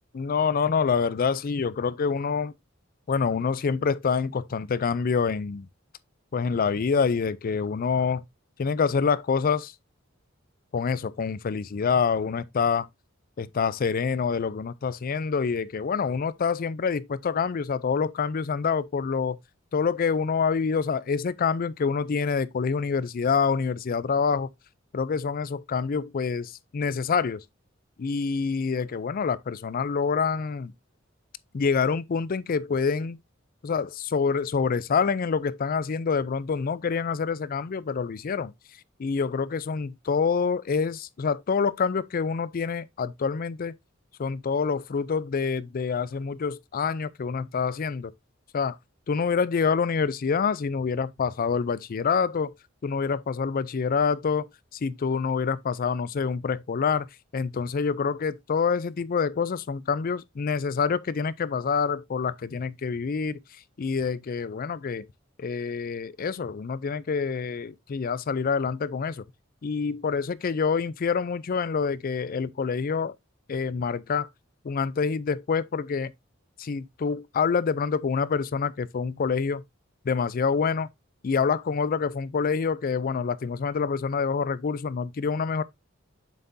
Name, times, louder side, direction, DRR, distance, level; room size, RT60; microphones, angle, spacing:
voice 1, 0.1-2.5 3.1-5.7 6.3-8.2 8.6-9.7 10.7-12.9 13.4-19.4 19.7-24.5 24.9-27.4 28.0-30.7 31.5-33.2 33.6-38.5 39.0-43.7 44.2-48.1 48.5-48.8 49.1-52.5 52.8-54.5 54.7-57.1 57.3-63.4 63.8-65.0 65.4-69.2 69.6-73.1 73.5-74.3 74.6-76.1 76.6-79.6 80.1-80.9 81.2-85.6, left 5 dB, 45° left, 0.4 m, -26 dB
7.4 x 5.7 x 2.6 m
head